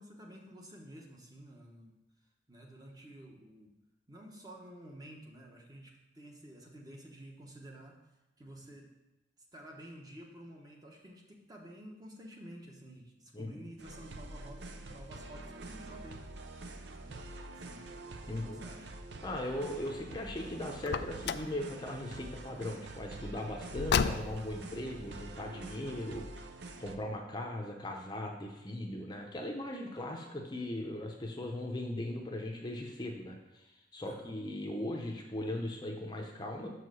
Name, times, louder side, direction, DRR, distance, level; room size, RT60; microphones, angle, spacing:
voice 1, 0.0-1.9 2.5-3.8 4.1-8.0 8.4-8.9 9.5-16.3 17.0-18.0 18.3-19.0 34.0-34.3, right 1 dB, 20° right, 0 dB, 1.0 m, -51 dB
voice 2, 13.3-13.7 18.2-18.6 19.2-26.5 26.8-36.7, left 1 dB, 25° left, 1 dB, 0.7 m, -39 dB
sound 1, 13.8-27.0, right 2 dB, 65° right, 0.6 m, -46 dB
Car, 20.8-21.6 23.7-24.6, left 6 dB, 60° left, 0.3 m, -32 dB
6.2 x 4.7 x 6.2 m, 1.0 s
head